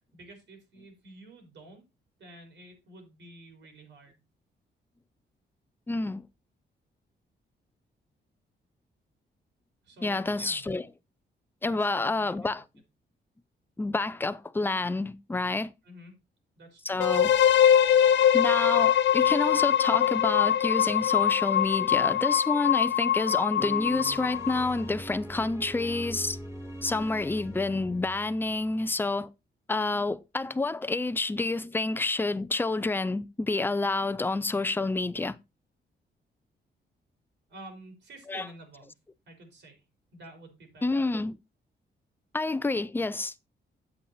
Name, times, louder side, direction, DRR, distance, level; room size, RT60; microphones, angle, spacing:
voice 1, 0.1-1.8 2.2-4.2 9.8-10.9 11.6-12.5 15.8-16.1 16.6-17.0 37.5-39.0 39.3-39.8 40.1-41.1, right 2 dB, 75° right, 4.5 m, -50 dB
voice 2, 5.9-6.3 10.0-10.9 11.6-12.6 13.8-15.7 16.8-17.3 18.3-26.4 26.8-29.3 29.7-35.4 38.3-38.5 40.8-41.4 42.3-43.3, left 3 dB, 10° left, 0.5 m, -28 dB
sound 1, 17.0-24.8, left 9 dB, 75° left, 0.7 m, -23 dB
sound 2, 23.6-28.7, equal, 15° right, 2.3 m, -42 dB
8.2 x 8.1 x 4.1 m
cardioid pair, 115°, 19 cm